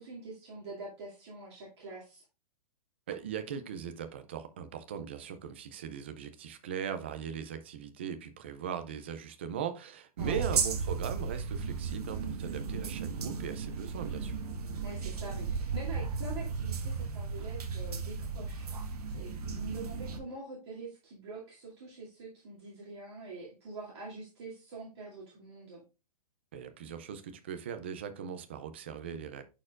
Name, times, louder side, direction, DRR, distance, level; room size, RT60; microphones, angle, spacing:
voice 1, 0.0-2.2 10.2-10.4 14.8-25.8, right 3 dB, 45° right, 2.3 m, -45 dB
voice 2, 3.1-14.4 26.5-29.4, right 8 dB, 20° right, 0.3 m, -39 dB
sound 1, 10.2-20.2, right 5 dB, 75° right, 1.3 m, -35 dB
10.5 x 4.4 x 2.4 m
hypercardioid pair, 175°, 20 cm